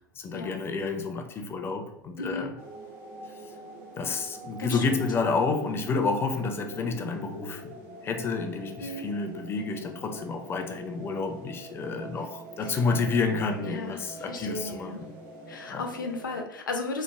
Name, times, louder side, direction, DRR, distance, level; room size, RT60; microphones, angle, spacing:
voice 1, 0.2-2.5 4.0-7.6 8.0-15.1 15.7-15.8, left 4 dB, 20° left, 5 dB, 0.4 m, -29 dB
voice 2, 2.2-2.5 4.6-5.1 8.8-9.1 12.6-12.8 13.6-15.0 15.5-17.0, left 3 dB, 75° left, 3 dB, 0.5 m, -35 dB
sound 1, 2.6-16.4, right 2 dB, 45° right, 0.9 m, -45 dB
3.1 x 2.0 x 3.4 m, 0.79 s
figure-of-eight pair, 80°, 11 cm